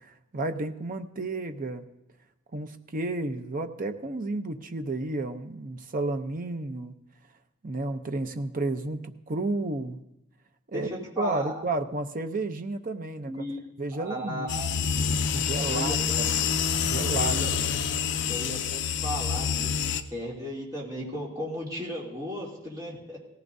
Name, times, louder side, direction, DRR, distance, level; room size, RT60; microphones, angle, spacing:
voice 1, 0.0-1.9 2.5-6.9 7.6-10.0 10.7-10.9 11.2-13.4 13.8-14.6 15.3-16.3 16.8-17.4, right 2 dB, 40° right, 7 dB, 0.7 m, -32 dB
voice 2, 10.7-11.6 13.2-13.6 13.9-14.7 15.6-16.2 17.2-17.5 18.3-19.7 20.0-23.2, equal, 20° right, -6 dB, 2.8 m, -35 dB
sound 1, 14.5-20.0, left 7 dB, 60° left, 0.6 m, -27 dB
18.0 x 14.5 x 2.7 m, 0.91 s
head